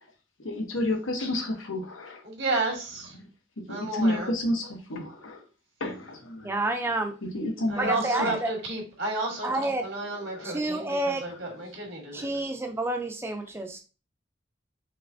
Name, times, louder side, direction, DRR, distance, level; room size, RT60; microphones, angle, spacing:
voice 1, 0.4-2.2 3.1-3.2 3.6-5.4 5.8-6.5 7.3-8.3 10.3-10.6 12.1-12.4, left 1 dB, 85° left, 1.1 m, -31 dB
voice 2, 2.2-3.1 3.7-4.3 7.7-9.5 9.8-12.5, right 2 dB, 70° right, 1.8 m, -32 dB
voice 3, 6.4-7.1 7.8-8.5 9.4-9.9 10.4-11.3 12.1-13.8, right 2 dB, 10° right, 0.5 m, -29 dB
5.3 x 3.3 x 2.7 m
head